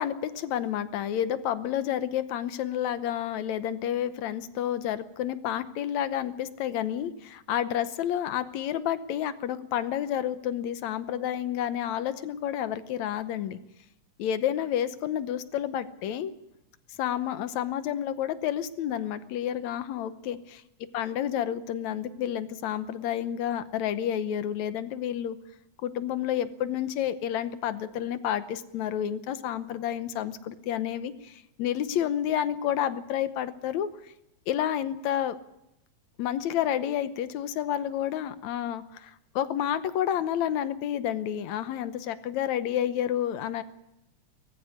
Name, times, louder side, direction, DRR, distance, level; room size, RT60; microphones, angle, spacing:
voice 1, 0.0-13.6 14.2-16.3 17.0-20.6 20.9-25.4 25.8-34.1 34.5-35.4 36.2-43.6, left 10 dB, 75° left, 12 dB, 2.2 m, -30 dB
19.5 x 15.0 x 9.6 m, 0.86 s
omnidirectional pair, 3.3 m